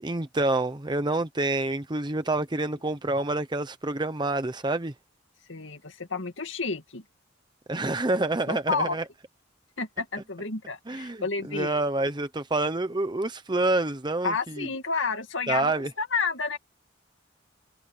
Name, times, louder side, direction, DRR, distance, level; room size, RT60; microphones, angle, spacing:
voice 1, 0.0-4.9 7.7-9.0 10.9-14.7 15.5-15.9, right 2 dB, 25° right, 0.8 m, -27 dB
voice 2, 5.5-7.0 8.5-9.0 9.8-11.7 14.2-16.6, left 4 dB, 75° left, 2.4 m, -30 dB
head